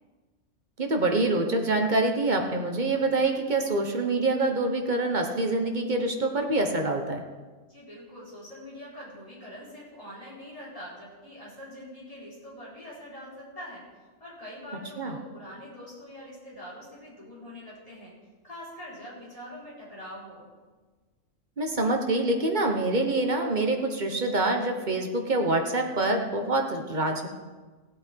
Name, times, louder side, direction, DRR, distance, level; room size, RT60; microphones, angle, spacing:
voice 1, 0.8-7.2 15.0-15.1 21.6-27.3, right 2 dB, 35° right, 3 dB, 1.3 m, -26 dB
voice 2, 7.7-13.8 14.2-18.1 18.4-20.5, equal, 25° left, -8 dB, 5.0 m, -44 dB
16.0 x 8.6 x 4.7 m, 1.3 s
omnidirectional pair, 1.4 m